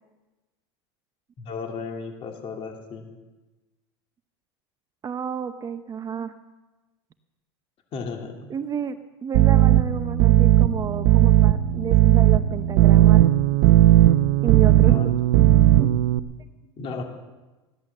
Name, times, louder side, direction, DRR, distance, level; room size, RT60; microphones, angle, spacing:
voice 1, 1.4-3.1 7.9-8.5 14.8-15.2 16.6-17.0, left 4 dB, 40° left, 3 dB, 2.6 m, -35 dB
voice 2, 5.0-6.3 8.5-13.2 14.4-15.0 15.8-16.0, right 7 dB, 25° right, 10 dB, 0.8 m, -31 dB
sound 1, 9.3-16.2, right 13 dB, 65° right, 0.7 m, -16 dB
15.5 x 11.0 x 7.3 m, 1.2 s
hypercardioid pair, 110°, 15 cm